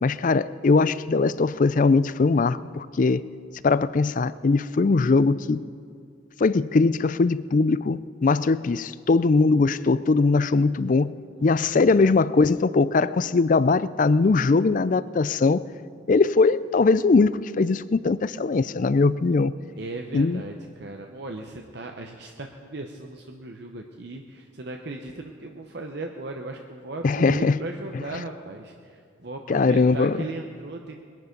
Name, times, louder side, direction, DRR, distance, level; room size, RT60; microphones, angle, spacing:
voice 1, 0.0-3.3 3.6-5.6 6.4-11.1 11.4-15.6 16.1-19.5 20.1-20.4 27.0-27.6 27.9-28.0 29.5-30.3, left 3 dB, 40° left, 16 dB, 0.4 m, -21 dB
voice 2, 11.4-12.1 19.8-31.0, right 2 dB, 55° right, 3 dB, 0.8 m, -37 dB
21.5 x 11.0 x 5.2 m, 2.3 s
head